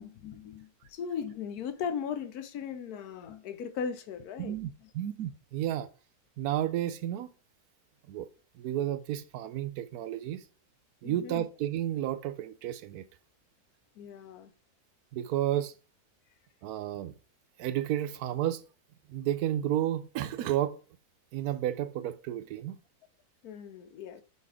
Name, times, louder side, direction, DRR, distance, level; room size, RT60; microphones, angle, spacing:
voice 1, 0.0-4.6 4.8-4.9 11.0-11.4 14.0-14.5 23.4-24.2, left 7 dB, 80° left, 1.2 m, -38 dB
voice 2, 4.4-5.9 6.4-7.3 8.1-8.3 8.6-10.4 11.0-13.0 15.1-15.7 16.6-17.1 17.6-18.6 19.1-20.8 21.3-22.8, right 12 dB, 80° right, 1.1 m, -32 dB
5.5 x 4.1 x 4.8 m
omnidirectional pair, 1.6 m